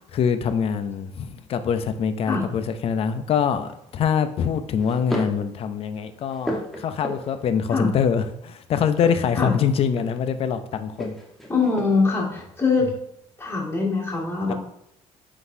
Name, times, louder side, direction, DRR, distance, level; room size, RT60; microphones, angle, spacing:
voice 1, 0.1-11.2 14.5-14.6, left 7 dB, 50° left, 0.6 m, -24 dB
sound 1, 3.6-4.0 4.8-5.5 5.9-7.5 8.9-10.3 10.9-12.1, equal, ahead, 1.1 m, -34 dB
voice 2, 11.5-12.9 13.4-14.5, left 4 dB, 20° left, 2.1 m, -23 dB
9.3 x 3.9 x 2.7 m
cardioid pair, 125°, 13 cm